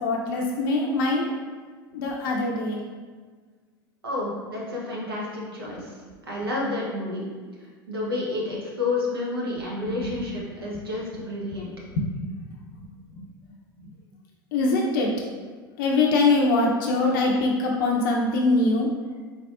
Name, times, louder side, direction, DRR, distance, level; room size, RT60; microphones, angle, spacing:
voice 1, 0.0-1.3 1.9-2.8 10.0-10.1 11.9-12.1 13.1-13.3 14.5-15.1 15.8-18.9, left 2 dB, 70° left, -1 dB, 0.5 m, -23 dB
voice 2, 4.0-6.0 6.2-7.3 7.9-11.7, left 2 dB, 90° right, -4 dB, 1.0 m, -30 dB
3.9 x 3.5 x 2.4 m, 1.5 s
hypercardioid pair, 80°, 12 cm